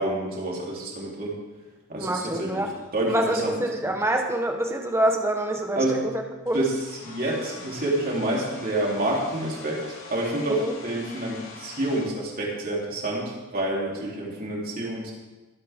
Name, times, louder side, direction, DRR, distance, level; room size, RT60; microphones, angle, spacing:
voice 1, 0.0-1.4 1.9-3.6 3.8-4.0 5.8-6.0 6.5-9.8 10.1-15.1, right 1 dB, 45° right, -3 dB, 3.4 m, -28 dB
voice 2, 2.0-2.7 3.1-5.8 6.4-6.7 10.5-10.7, right 1 dB, 15° right, 3 dB, 1.2 m, -26 dB
Domestic sounds home sounds, 6.5-12.0, left 3 dB, 80° left, 5.4 m, -44 dB
23.0 x 8.7 x 3.7 m, 1.2 s
head